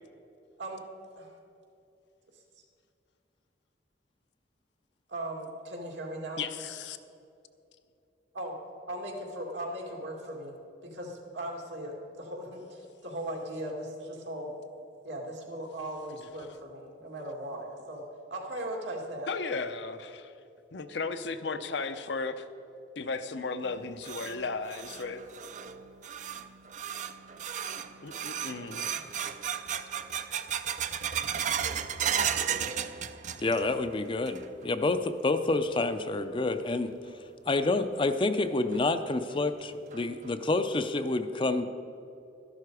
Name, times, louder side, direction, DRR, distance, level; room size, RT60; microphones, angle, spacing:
voice 1, 5.1-6.4 8.3-8.6 8.9-10.5 10.9-14.5 15.0-18.0 18.3-19.3 28.6-29.0, right 1 dB, 80° right, 0 dB, 2.3 m, -38 dB
voice 2, 6.4-7.0 19.3-20.3 20.7-22.5 23.0-25.2 28.0-28.9, left 4 dB, 70° left, 9 dB, 0.7 m, -35 dB
sound 1, 23.6-33.8 34.1-34.7 35.1-35.2 35.9-36.0 37.6-37.7 38.2-38.3 38.7-38.8 39.3-39.4 39.9-40.3, right 8 dB, 40° right, 0.5 m, -34 dB
voice 3, 33.4-36.9 37.5-41.6, left 2 dB, 30° left, 10 dB, 0.5 m, -28 dB
13.0 x 11.5 x 4.8 m, 2.7 s
head